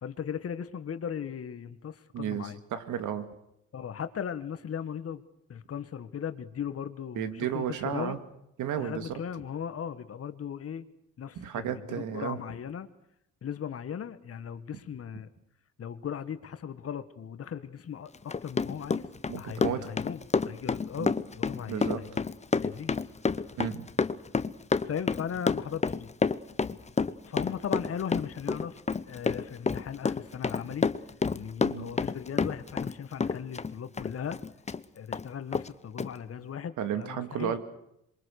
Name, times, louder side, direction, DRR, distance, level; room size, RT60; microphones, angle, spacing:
voice 1, 0.0-2.6 3.7-5.2 5.5-7.6 7.9-8.2 8.8-10.8 11.2-12.9 13.4-15.3 15.8-19.1 19.4-22.3 22.6-22.9 23.2-23.4 24.8-26.1 27.3-28.8 29.1-30.9 31.3-34.4 34.9-37.6, left 8 dB, 50° left, 11 dB, 1.7 m, -37 dB
voice 2, 2.1-3.3 7.1-8.2 8.6-9.1 11.4-12.4 19.3-19.9 21.0-21.1 21.7-22.0 23.6-23.9 31.6-31.9 36.8-37.6, right 9 dB, 80° right, 9 dB, 2.3 m, -33 dB
Run, 18.1-33.0 33.2-34.8 35.1-35.2 35.5-35.7 36.0-36.1, left 4 dB, 20° left, 0.9 m, -29 dB
26.5 x 23.5 x 6.6 m, 0.78 s
cardioid pair, 90°, 30 cm